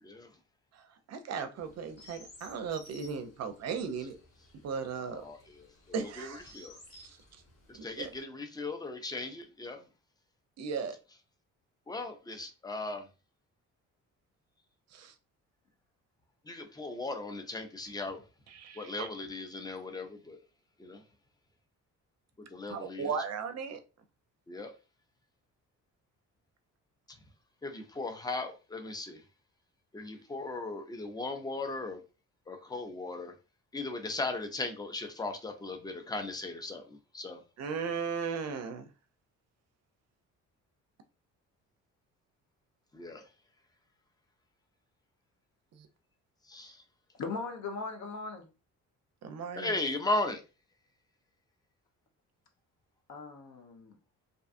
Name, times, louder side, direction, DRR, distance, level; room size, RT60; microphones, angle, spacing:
voice 1, 1.1-4.2 4.6-5.2 5.9-7.2 7.8-8.1 10.6-11.0 14.9-15.1 18.5-19.1 22.7-23.8 37.6-38.9 45.7-45.9 49.2-49.7, right 6 dB, 60° right, 0.5 m, -37 dB
Chirp tweet, 1.6-8.2, left 1 dB, 45° left, 1.1 m, -57 dB
voice 2, 5.1-5.7 6.2-6.8 7.7-9.8 11.9-13.1 16.5-18.2 18.8-20.4 20.8-21.0 22.5-23.1 24.5-24.7 27.6-29.2 29.9-32.0 32.5-33.3 33.7-37.4 42.9-43.2 46.5-46.8 49.6-50.4, left 2 dB, 15° left, 0.5 m, -37 dB
voice 3, 47.2-48.5 53.1-54.0, left 4 dB, 70° left, 0.8 m, -39 dB
2.6 x 2.3 x 2.5 m
cardioid pair, 90°, 30 cm